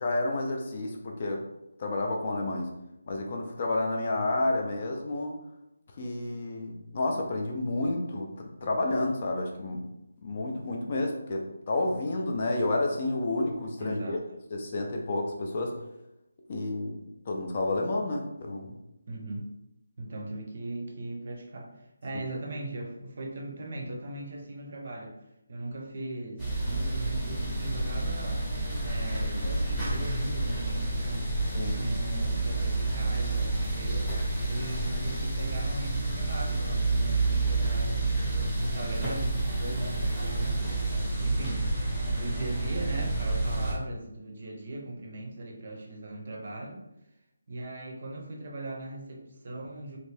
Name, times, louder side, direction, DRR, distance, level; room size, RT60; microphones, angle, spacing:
voice 1, 0.0-1.4 1.8-2.7 3.1-5.4 6.0-9.9 10.2-14.2 14.5-15.7 16.5-17.0 17.3-18.7 31.5-31.8, left 2 dB, 30° left, 1 dB, 0.4 m, -30 dB
voice 2, 13.8-14.2 19.1-19.5 20.0-25.2 25.5-28.4 28.8-29.5 29.8-31.3 31.7-34.1 34.5-38.2 38.6-40.8 41.2-46.8 47.5-50.0, right 2 dB, 40° right, 1 dB, 0.6 m, -39 dB
sound 1, 26.4-43.7, right 2 dB, ahead, 0.7 m, -29 dB
3.2 x 2.6 x 3.2 m, 0.89 s
hypercardioid pair, 175°, 0 cm